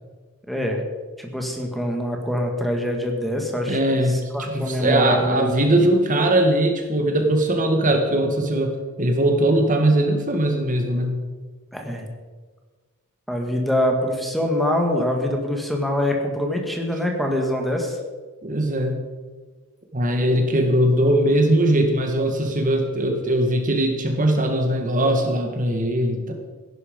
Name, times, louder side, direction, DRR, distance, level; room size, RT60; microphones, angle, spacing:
voice 1, 0.5-0.8 1.2-5.6 11.7-12.1 13.3-18.0, left 1 dB, ahead, 2 dB, 1.8 m, -24 dB
voice 2, 3.7-11.1 18.4-19.0 19.9-26.3, right 1 dB, 35° right, 4 dB, 1.7 m, -20 dB
16.0 x 11.0 x 5.2 m, 1.4 s
head